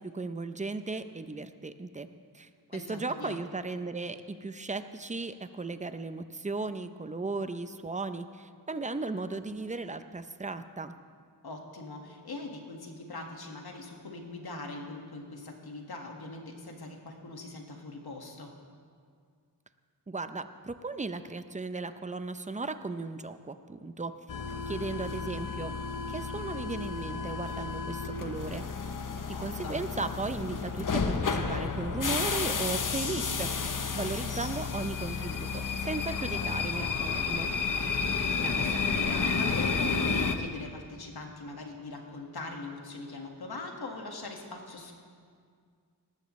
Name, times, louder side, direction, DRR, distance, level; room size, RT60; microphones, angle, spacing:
voice 1, 0.0-2.1 2.3-11.0 20.1-24.1 24.7-25.8 26.1-28.6 29.3-37.5, right 3 dB, 20° right, 10 dB, 0.5 m, -36 dB
voice 2, 2.7-3.4 11.4-18.6 29.3-29.8 38.3-44.9, left 2 dB, 65° left, 2 dB, 1.8 m, -41 dB
sound 1, 24.3-40.4, left 5 dB, 50° left, 0.9 m, -31 dB
19.5 x 14.0 x 3.2 m, 2.1 s
wide cardioid pair, 100°, 40 cm